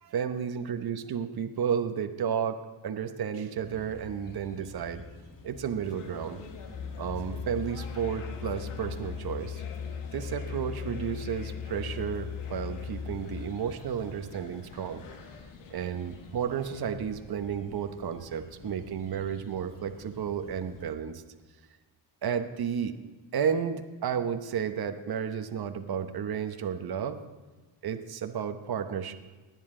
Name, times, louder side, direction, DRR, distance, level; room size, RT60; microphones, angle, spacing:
voice 1, 0.0-2.6 2.8-5.0 5.4-6.4 7.0-9.6 10.1-15.0 15.7-21.2 22.2-23.0 23.3-27.2 27.8-29.1, right 7 dB, 50° right, 8 dB, 1.0 m, -32 dB
sound 1, 3.6-20.9, left 4 dB, 40° left, 1.8 m, -49 dB
sound 2, 5.8-16.9, left 5 dB, 85° left, 1.5 m, -49 dB
Musical instrument, 6.7-13.6, left 7 dB, 60° left, 2.2 m, -38 dB
19.5 x 10.5 x 3.8 m, 1.3 s
cardioid pair, 95°, 50 cm